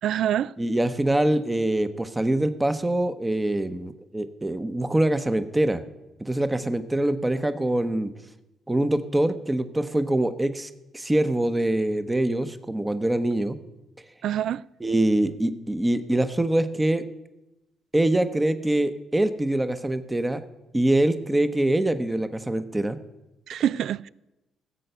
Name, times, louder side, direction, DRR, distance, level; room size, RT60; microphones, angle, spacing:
voice 1, 0.0-0.5 14.2-14.6 23.5-24.1, right 10 dB, 75° right, 0.3 m, -25 dB
voice 2, 0.6-5.8 6.2-8.1 8.7-13.6 14.8-17.0 17.9-20.5 20.7-23.0, right 1 dB, 15° right, 0.9 m, -24 dB
15.5 x 7.8 x 6.8 m
cardioid pair, 90°, 0 cm